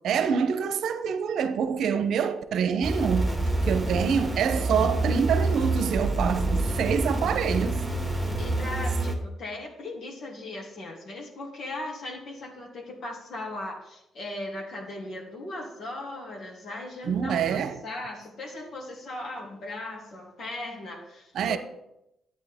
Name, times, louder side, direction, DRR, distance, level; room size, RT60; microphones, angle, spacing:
voice 1, 0.0-3.3 3.6-7.8 17.0-17.8 21.3-21.6, right 7 dB, 70° right, 0.8 m, -26 dB
sound 1, 2.8-9.1, right 2 dB, ahead, 2.2 m, -27 dB
voice 2, 8.4-21.6, left 2 dB, 60° left, 2.7 m, -38 dB
11.0 x 8.8 x 3.6 m
cardioid pair, 90°, 0 cm